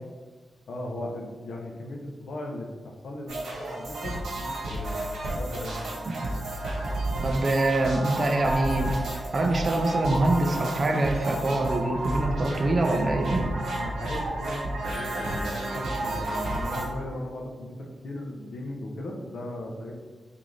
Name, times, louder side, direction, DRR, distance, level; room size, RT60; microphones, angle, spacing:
voice 1, 0.7-5.0 5.4-6.0 13.7-19.9, left 1 dB, 60° left, 0 dB, 0.6 m, -37 dB
sound 1, 3.3-16.9, right 1 dB, 85° right, 1.2 m, -31 dB
voice 2, 7.2-8.9 9.3-13.5, right 2 dB, 35° right, 4 dB, 0.3 m, -25 dB
3.7 x 2.5 x 3.1 m, 1.3 s
wide cardioid pair, 170°, 0 cm